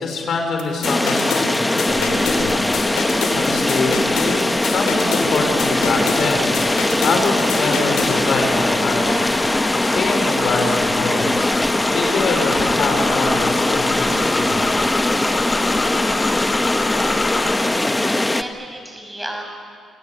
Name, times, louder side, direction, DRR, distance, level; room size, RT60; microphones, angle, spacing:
voice 1, 0.0-2.7 3.4-9.4 9.8-11.5 11.9-14.8, left 3 dB, 60° left, 3 dB, 4.9 m, -25 dB
sound 1, 0.6-8.2, left 5 dB, 90° left, 3.3 m, -28 dB
sound 2, 0.8-18.4, left 2 dB, 15° left, 1.1 m, -20 dB
sound 3, 1.9-17.6, left 3 dB, 35° left, 3.2 m, -29 dB
voice 2, 18.0-19.4, right 1 dB, 10° right, 2 dB, 6.4 m, -33 dB
28.0 x 18.5 x 8.9 m, 2.1 s
cardioid pair, 90°, 0 cm